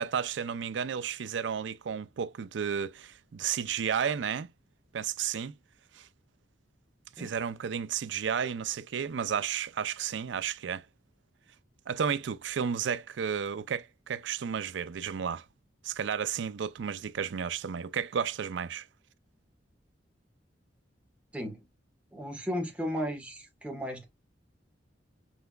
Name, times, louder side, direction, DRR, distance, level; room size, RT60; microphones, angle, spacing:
voice 1, 0.0-4.5 4.9-5.5 5.9-6.1 7.2-10.8 11.9-15.4 15.8-18.8, right 7 dB, 75° right, 0.4 m, -32 dB
voice 2, 21.3-21.7 22.1-24.1, equal, 5° right, 1.4 m, -35 dB
5.6 x 3.3 x 2.2 m
head